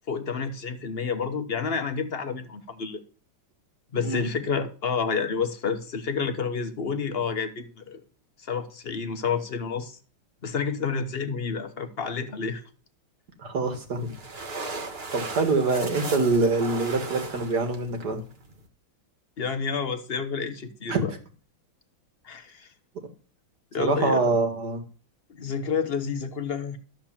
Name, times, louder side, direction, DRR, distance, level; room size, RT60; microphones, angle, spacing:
voice 1, 0.1-3.0 3.9-8.0 8.4-10.0 10.4-12.6 19.4-21.1 22.2-22.7 23.7-24.3 25.3-26.8, left 5 dB, 40° left, 0.9 m, -29 dB
voice 2, 13.4-14.1 15.1-18.2 20.9-21.0 23.8-24.8, right 3 dB, 50° right, 2.3 m, -25 dB
sound 1, 13.6-18.7, right 3 dB, 30° right, 1.6 m, -38 dB
13.0 x 4.6 x 7.3 m
omnidirectional pair, 2.2 m